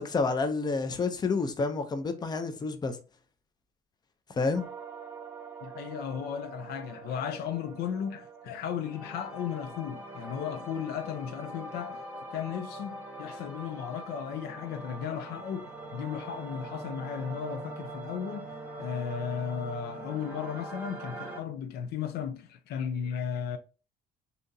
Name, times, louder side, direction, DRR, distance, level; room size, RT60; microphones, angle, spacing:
voice 1, 0.0-3.0 4.4-4.6, left 4 dB, 25° left, 0.5 m, -29 dB
sound 1, 4.5-21.4, right 2 dB, 10° right, 0.9 m, -43 dB
voice 2, 5.6-12.0 12.3-23.6, left 8 dB, 70° left, 0.4 m, -35 dB
2.8 x 2.5 x 3.7 m
cardioid pair, 110°, 17 cm